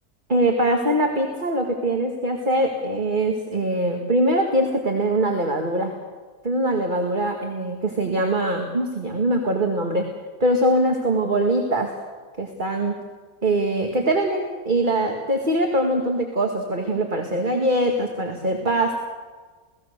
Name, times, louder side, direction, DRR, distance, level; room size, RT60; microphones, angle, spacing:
voice 1, 0.3-5.9 6.4-10.1 10.4-12.0 12.4-13.0 13.4-19.0, right 1 dB, 35° right, 3 dB, 2.2 m, -22 dB
28.5 x 19.0 x 6.8 m, 1.4 s
omnidirectional pair, 1.5 m